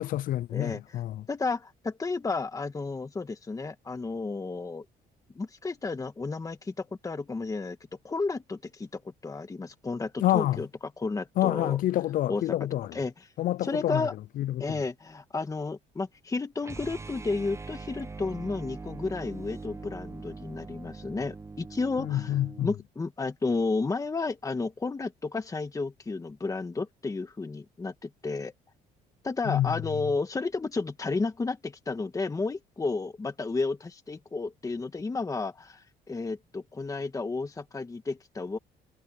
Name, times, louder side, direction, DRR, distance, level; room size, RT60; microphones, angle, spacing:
voice 1, 0.0-1.3 10.2-10.6 11.4-13.0 13.4-14.1 14.4-14.8 22.0-22.7 29.4-29.8, left 14 dB, 55° left, 0.4 m, -27 dB
voice 2, 0.5-1.0 1.3-4.8 5.3-7.8 8.0-10.7 11.0-11.8 12.3-12.4 12.9-13.1 13.6-14.1 14.6-22.4 22.6-28.5 29.2-38.6, left 3 dB, 20° left, 1.6 m, -32 dB
sound 1, 16.6-22.7, right 3 dB, 15° right, 0.8 m, -42 dB
cardioid pair, 110°, 17 cm